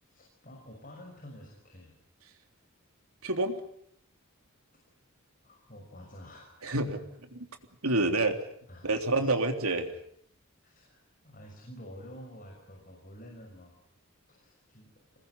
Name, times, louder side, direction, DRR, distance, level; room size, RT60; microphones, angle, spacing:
voice 1, 0.0-1.9 5.4-6.5 8.7-9.4 10.6-13.7 14.3-14.9, equal, 40° left, 1 dB, 6.2 m, -49 dB
voice 2, 3.2-3.6 6.6-7.0 7.3-7.5 7.8-8.4 8.8-9.9, right 2 dB, 85° right, 5 dB, 3.4 m, -28 dB
27.0 x 20.5 x 9.8 m, 0.71 s
head